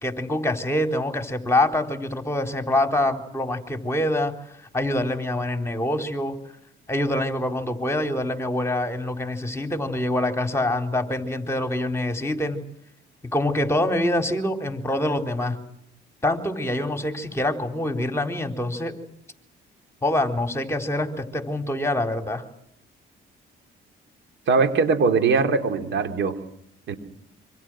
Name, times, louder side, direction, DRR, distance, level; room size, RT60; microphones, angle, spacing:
voice 1, 0.0-4.3 4.7-6.4 6.9-12.6 13.3-15.6 16.2-19.0 20.0-22.4, left 1 dB, 15° left, 6 dB, 4.1 m, -25 dB
voice 2, 24.5-26.4 26.9-27.0, right 4 dB, 70° right, 7 dB, 3.8 m, -21 dB
27.5 x 25.5 x 6.4 m, 0.74 s
cardioid pair, 90°, 20 cm